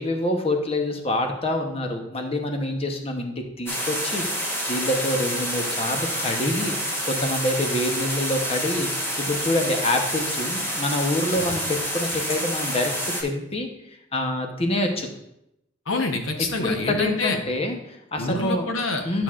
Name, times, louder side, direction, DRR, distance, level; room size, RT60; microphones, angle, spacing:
voice 1, 0.0-6.7 7.0-12.9 13.2-15.1 16.6-18.7 19.0-19.2, left 1 dB, 30° left, 4 dB, 0.9 m, -26 dB
sound 1, 3.7-13.2, equal, 10° left, 1.1 m, -28 dB
voice 2, 15.9-17.4 18.2-19.2, left 2 dB, 85° left, 4 dB, 1.0 m, -27 dB
10.5 x 5.9 x 2.4 m, 0.82 s
head